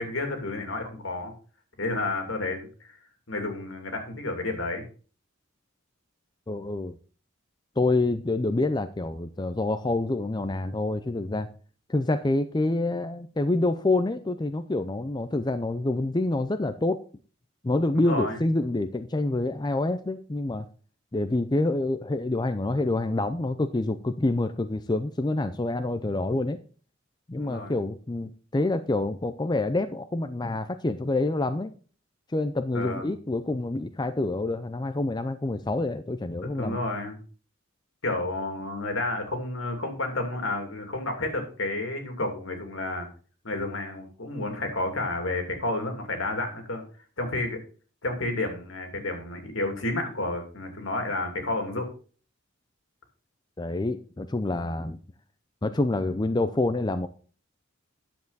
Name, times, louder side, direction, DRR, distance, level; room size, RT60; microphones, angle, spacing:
voice 1, 0.0-1.3 1.8-2.9 3.3-4.8 17.9-18.4 27.4-27.8 32.7-33.1 36.6-37.2 38.0-43.1 43.4-46.8 47.2-47.6 48.0-51.9, left 2 dB, 75° left, 4 dB, 2.6 m, -31 dB
voice 2, 6.5-7.0 7.8-11.5 11.9-17.0 17.6-20.7 21.1-26.6 27.3-31.7 32.3-36.8 53.6-55.0 55.6-57.1, left 2 dB, 20° left, 10 dB, 0.5 m, -27 dB
10.5 x 7.4 x 4.0 m, 0.39 s
head